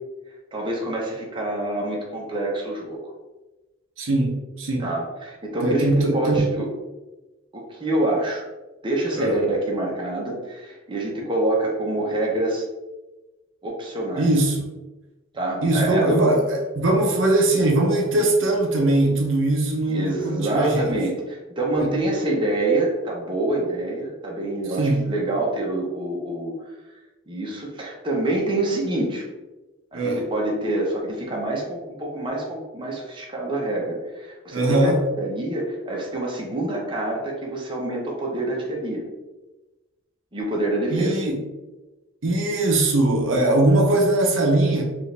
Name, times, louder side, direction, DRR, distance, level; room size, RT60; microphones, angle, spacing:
voice 1, 0.5-3.0 4.8-6.7 7.5-8.4 8.8-12.6 13.6-14.3 15.3-16.3 19.9-26.5 27.3-29.3 29.9-34.9 35.2-39.0 40.3-41.2, right 2 dB, 25° right, -2 dB, 0.8 m, -26 dB
voice 2, 4.0-4.9 5.6-6.5 9.2-9.4 14.2-14.6 15.6-20.9 21.8-21.9 24.8-25.0 29.9-30.2 34.5-35.0 40.9-41.4 42.2-44.8, right 2 dB, 70° right, 1 dB, 0.7 m, -20 dB
4.6 x 2.5 x 3.3 m, 1.1 s
head